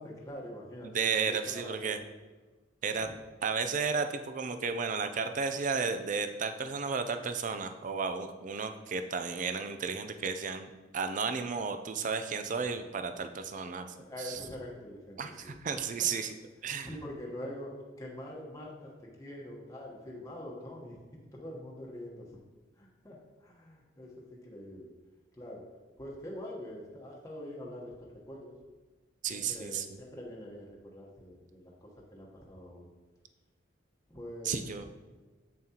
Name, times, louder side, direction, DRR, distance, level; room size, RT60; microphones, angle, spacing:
voice 1, 0.0-1.9 2.9-3.1 13.9-16.1 16.8-21.0 21.3-22.2 22.8-24.9 25.3-25.6 26.0-28.6 29.3-32.9 34.1-34.6, left 1 dB, 15° left, -3 dB, 1.1 m, -44 dB
voice 2, 0.8-2.0 2.8-3.1 3.4-13.9 14.2-14.4 15.2-16.3 16.6-16.9 29.2-29.9 34.5-34.9, right 5 dB, 40° right, 8 dB, 0.4 m, -33 dB
8.0 x 7.4 x 2.9 m, 1.2 s
head